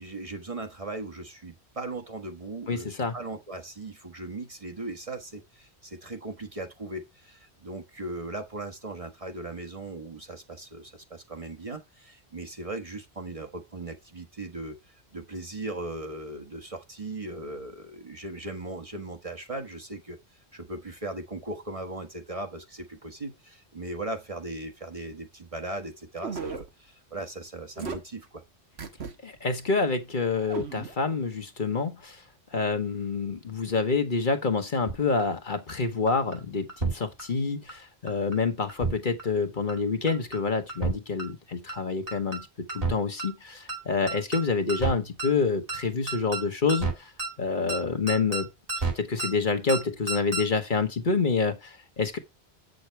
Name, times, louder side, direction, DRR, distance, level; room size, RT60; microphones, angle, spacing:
voice 1, 0.0-20.2 20.5-28.4, right 2 dB, 35° right, 1.2 m, -38 dB
voice 2, 2.7-3.2 29.2-32.2 32.5-47.1 47.4-48.5 48.9-52.2, left 4 dB, 50° left, 1.2 m, -27 dB
sound 1, 26.2-26.7 27.8-28.0 28.8-29.1 29.5-29.6 30.4-30.9, right 5 dB, 75° right, 1.6 m, -35 dB
sound 2, 34.9-35.0 35.2-35.3 35.7-35.8 36.1-36.4 36.7-36.9 37.2-37.3 37.7-37.8 38.1-38.4 38.7-38.9 39.2-39.3 39.7-39.8 40.1-40.4 40.7-40.9 41.2-41.3 41.7-41.8 42.1-42.4 42.7-42.9 43.2-43.3 43.7-43.8 44.1-44.4 44.7-44.9 45.2-45.3 45.7-45.8 46.1-46.4 46.7-46.9 47.2-47.3 47.7-47.8 48.1-48.4 48.7-48.9 49.2-49.3 49.7-49.8 50.1-50.4, right 3 dB, 60° right, 2.8 m, -30 dB
8.0 x 6.5 x 4.5 m
omnidirectional pair, 1.1 m